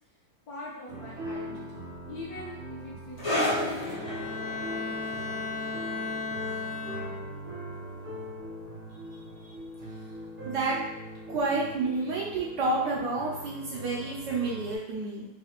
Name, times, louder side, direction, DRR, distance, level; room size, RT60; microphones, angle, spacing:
voice 1, 0.5-4.1 4.4-5.0, left 2 dB, 60° left, -6 dB, 1.1 m, -44 dB
sound 1, 0.9-14.8, right 1 dB, 50° right, 0.6 m, -41 dB
sound 2, 3.2-10.2 10.4-10.7 11.4-11.5, left 1 dB, 30° left, 0.6 m, -35 dB
Bowed string instrument, 3.8-7.5, left 4 dB, 75° left, 0.8 m, -35 dB
voice 2, 10.4-10.8 11.3-15.3, right 3 dB, 70° right, -4 dB, 1.1 m, -29 dB
4.1 x 2.8 x 2.8 m, 0.87 s
omnidirectional pair, 2.3 m